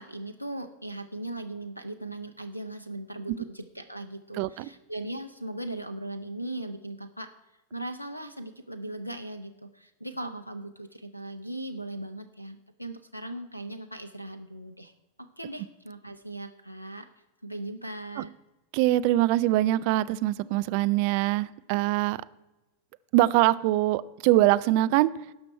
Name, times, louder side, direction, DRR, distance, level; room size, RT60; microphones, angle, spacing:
voice 1, 0.0-7.3 7.7-14.9 15.2-17.1 17.4-18.3, right 1 dB, 90° left, 11 dB, 0.5 m, -38 dB
voice 2, 4.4-4.7 18.2-18.3 18.7-22.2 23.1-25.1, right 15 dB, 45° right, 16 dB, 0.4 m, -23 dB
17.5 x 6.0 x 4.4 m, 1.0 s
figure-of-eight pair, 90°, 0 cm